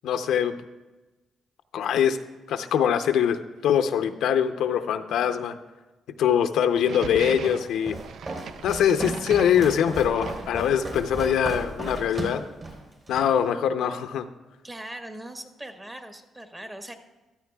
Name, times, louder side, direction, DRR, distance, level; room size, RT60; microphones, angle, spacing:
voice 1, 0.0-0.6 1.7-2.2 2.5-5.6 6.2-8.0 8.6-12.4 13.1-14.3, left 8 dB, 80° left, 8 dB, 0.6 m, -23 dB
sound 1, 6.7-11.1, right 7 dB, 70° right, 0.4 m, -40 dB
Walk footsteps, 6.9-13.4, right 2 dB, 40° right, 3.3 m, -35 dB
voice 2, 14.6-16.9, right 1 dB, 20° right, 5 dB, 1.3 m, -40 dB
14.5 x 13.0 x 2.3 m, 1.1 s
cardioid pair, 90°, 0 cm